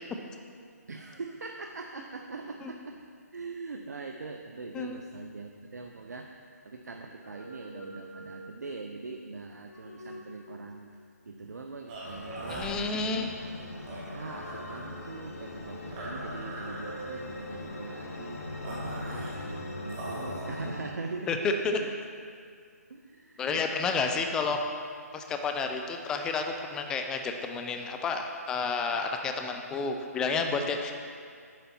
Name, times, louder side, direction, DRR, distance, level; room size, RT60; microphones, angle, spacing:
voice 1, 0.9-3.0 3.3-6.3 6.6-10.9 11.3-13.3 14.1-18.4 18.8-19.3 19.8-21.9 22.9-24.1, right 3 dB, 75° right, 3 dB, 0.5 m, -42 dB
sound 1, 7.1-8.9 9.5-10.9 11.8-13.2 14.3-16.1 16.7-17.6, right 1 dB, 80° left, 1.2 m, -47 dB
sound 2, 11.9-20.5, right 2 dB, 25° right, 1.4 m, -42 dB
sound 3, 12.0-20.9, left 2 dB, 60° left, 1.1 m, -41 dB
voice 2, 12.5-13.3 21.3-21.8 23.4-24.6 25.1-30.9, left 4 dB, 10° left, 5 dB, 0.3 m, -30 dB
9.1 x 5.4 x 4.3 m, 2.2 s
figure-of-eight pair, 150°, 9 cm